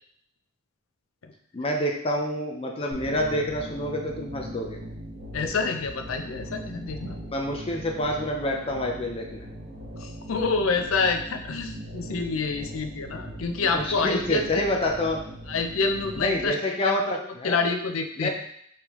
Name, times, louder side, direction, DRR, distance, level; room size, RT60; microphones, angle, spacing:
voice 1, 1.5-4.8 7.2-9.5 13.6-15.2 16.2-17.6 18.2-18.3, left 1 dB, 30° left, 1 dB, 0.5 m, -28 dB
sound 1, 2.9-16.5, equal, 55° right, 1.3 m, -40 dB
voice 2, 5.3-7.2 10.0-14.6 15.5-17.2 17.4-18.3, left 4 dB, 85° left, 6 dB, 0.5 m, -27 dB
5.2 x 3.2 x 3.0 m, 0.68 s
head